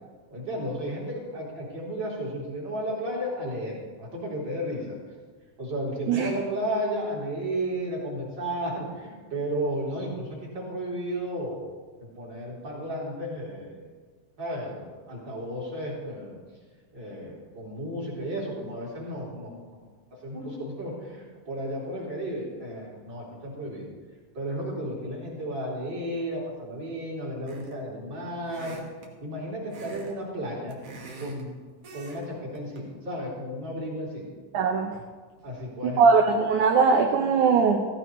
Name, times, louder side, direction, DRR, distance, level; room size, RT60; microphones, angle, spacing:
voice 1, 0.3-5.0 5.6-11.7 12.0-13.9 14.4-16.4 16.9-19.5 20.2-23.9 24.3-28.8 29.2-30.8 31.2-31.5 31.9-34.3 35.4-36.0, equal, 30° right, -5 dB, 3.7 m, -33 dB
sound 1, 27.5-27.9 28.5-29.1 29.7-30.1 30.4-31.4 31.8-32.2 32.5-32.8, right 2 dB, 50° right, 2.2 m, -44 dB
voice 2, 34.5-35.0 35.8-37.9, right 5 dB, 70° right, 4 dB, 2.0 m, -21 dB
15.5 x 15.0 x 3.1 m, 1.5 s
omnidirectional pair, 4.1 m